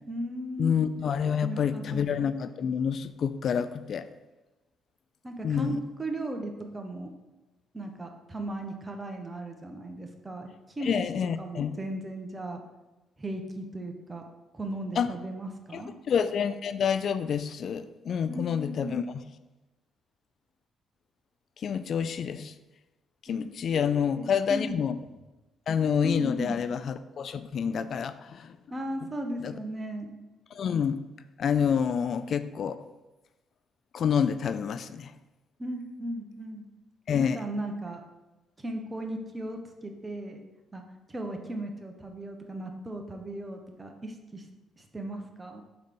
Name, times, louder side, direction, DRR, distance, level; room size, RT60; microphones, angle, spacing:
voice 1, 0.1-0.8 1.4-2.1 5.2-7.1 7.7-11.0 11.4-12.6 13.2-14.2 14.5-15.9 18.3-18.9 23.3-23.4 23.7-23.8 24.1-24.9 26.0-26.6 28.7-30.1 35.6-36.6 37.2-38.0 38.6-40.4 40.7-40.8 41.1-44.4 44.8-45.6, right 1 dB, 20° right, 4 dB, 1.1 m, -36 dB
voice 2, 0.6-4.1 5.4-5.8 10.8-11.7 15.0-15.2 15.7-15.8 16.1-19.0 21.6-22.5 23.2-25.0 25.7-28.5 29.4-29.5 30.5-31.0 31.4-32.8 33.9-35.1 37.1-37.4, left 7 dB, 60° left, 12 dB, 0.3 m, -28 dB
6.4 x 4.0 x 5.3 m, 1.1 s
cardioid pair, 90°, 0 cm